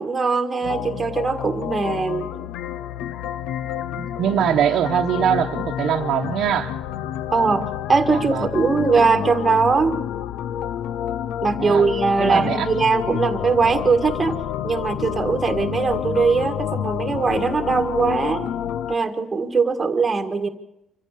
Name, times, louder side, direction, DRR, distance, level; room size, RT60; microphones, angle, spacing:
voice 1, 0.0-2.3 7.3-10.0 11.4-14.4 14.6-18.5 18.9-20.5, right 4 dB, 15° right, 1.8 m, -21 dB
sound 1, 0.6-18.9, left 10 dB, 75° left, 0.7 m, -29 dB
voice 2, 0.6-1.1 4.0-6.8 8.1-8.5 11.4-11.9 12.2-12.7, right 9 dB, 55° right, 1.0 m, -23 dB
26.5 x 15.0 x 6.6 m
cardioid pair, 170°, 0 cm